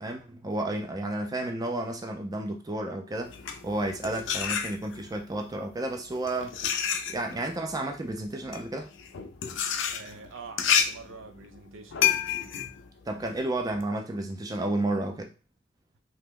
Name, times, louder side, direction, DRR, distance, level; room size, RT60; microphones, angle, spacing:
voice 1, 0.0-3.3 3.6-6.6 7.1-8.9 13.1-15.3, right 1 dB, 20° right, 3 dB, 0.4 m, -31 dB
sound 1, 3.2-5.2 5.9-13.8, left 8 dB, 65° left, 0.4 m, -29 dB
voice 2, 9.9-12.0, right 4 dB, 80° right, 7 dB, 0.5 m, -45 dB
2.9 x 2.1 x 3.5 m, 0.33 s
head